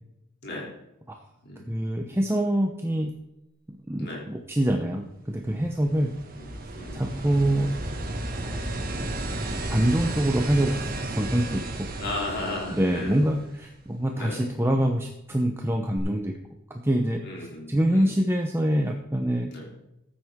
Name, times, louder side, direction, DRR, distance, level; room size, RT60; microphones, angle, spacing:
voice 1, 1.7-3.1 3.9-6.1 6.9-7.8 8.4-8.6 9.7-11.9 12.7-16.3 16.7-17.2 17.7-19.5, right 1 dB, 10° right, 3 dB, 0.8 m, -25 dB
sound 1, 5.3-13.8 16.0-16.1, right 1 dB, 45° right, 1.9 m, -33 dB
voice 2, 6.7-7.1 12.0-13.3 14.1-14.4 17.2-18.2 19.5-19.7, left 2 dB, 55° left, -1 dB, 3.0 m, -35 dB
14.0 x 9.3 x 3.7 m, 0.88 s
head